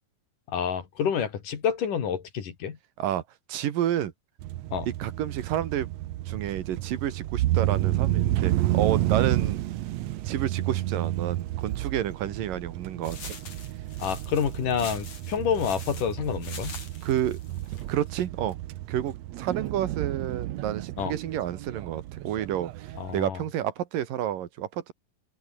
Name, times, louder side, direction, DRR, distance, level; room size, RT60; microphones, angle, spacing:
voice 1, 0.5-2.8 4.7-4.9 14.0-16.8 21.0-21.1 23.0-23.4, left 7 dB, 75° left, 4.3 m, -28 dB
voice 2, 3.5-4.1 5.0-5.9 6.3-9.6 10.2-13.4 17.0-17.4 17.9-18.6 18.9-24.9, right 11 dB, 90° right, 3.4 m, -30 dB
sound 1, 4.4-23.2, right 15 dB, 70° right, 1.7 m, -31 dB
sound 2, 13.0-18.2, left 5 dB, 50° left, 5.1 m, -44 dB
open air
omnidirectional pair, 3.8 m